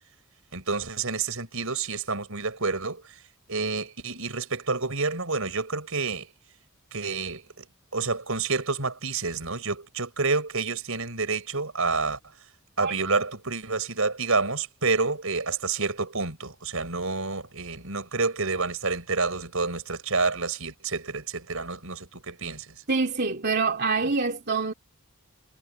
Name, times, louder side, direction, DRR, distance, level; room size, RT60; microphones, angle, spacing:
voice 1, 0.5-3.0 3.5-6.3 6.9-7.7 7.9-12.2 12.8-22.7, right 4 dB, 70° right, 5.8 m, -29 dB
voice 2, 22.9-24.7, right 4 dB, 50° right, 2.7 m, -25 dB
head